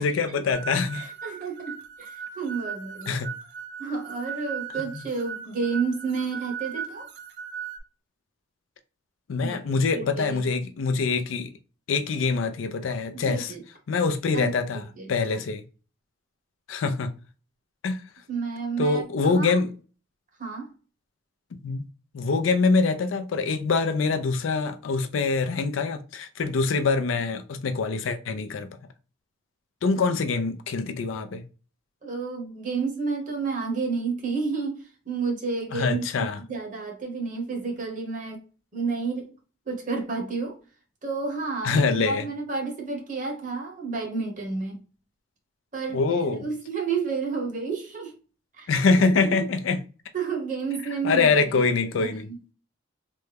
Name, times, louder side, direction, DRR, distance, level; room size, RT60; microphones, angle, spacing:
voice 1, 0.0-1.1 3.1-3.3 9.3-11.5 11.9-13.5 13.9-15.6 16.7-17.1 17.8-18.0 18.8-19.7 21.6-21.9 22.1-28.7 29.8-31.4 35.7-36.4 41.6-42.2 45.9-46.5 48.7-49.8 51.0-52.3, left 4 dB, 80° left, 0.4 m, -24 dB
sound 1, 0.5-7.8, right 7 dB, 55° right, 0.5 m, -38 dB
voice 2, 0.9-3.2 3.8-7.1 9.4-10.4 13.3-13.6 14.3-15.1 18.3-19.6 20.4-20.7 32.0-38.4 38.7-39.3 39.7-40.6 41.0-44.8 45.7-48.1 48.6-48.7 49.2-49.5 50.1-52.4, right 4 dB, 40° right, 0.9 m, -31 dB
3.4 x 2.1 x 3.3 m
head